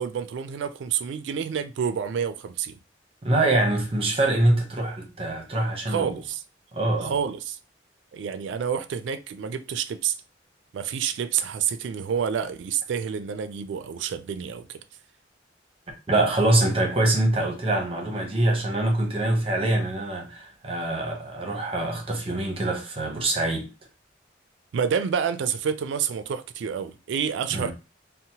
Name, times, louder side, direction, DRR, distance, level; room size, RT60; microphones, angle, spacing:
voice 1, 0.0-2.8 5.9-6.4 7.0-7.6 8.1-10.2 10.7-14.8 24.7-27.7, right 7 dB, 85° right, 0.3 m, -28 dB
voice 2, 3.2-6.2 6.7-7.1 16.1-23.7 27.5-27.7, right 2 dB, 30° right, 0.7 m, -24 dB
2.7 x 2.0 x 2.8 m
head